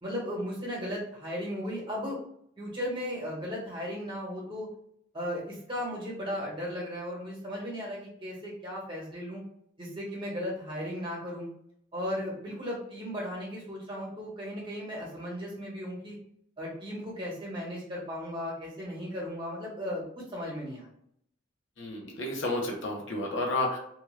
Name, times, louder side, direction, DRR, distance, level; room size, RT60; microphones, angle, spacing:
voice 1, 0.0-2.2 2.6-4.7 5.1-9.4 9.8-11.5 11.9-16.2 16.6-20.9, equal, 25° right, -4 dB, 1.1 m, -36 dB
voice 2, 21.8-23.8, left 2 dB, 70° left, -1 dB, 0.7 m, -31 dB
2.8 x 2.3 x 3.2 m, 0.71 s
head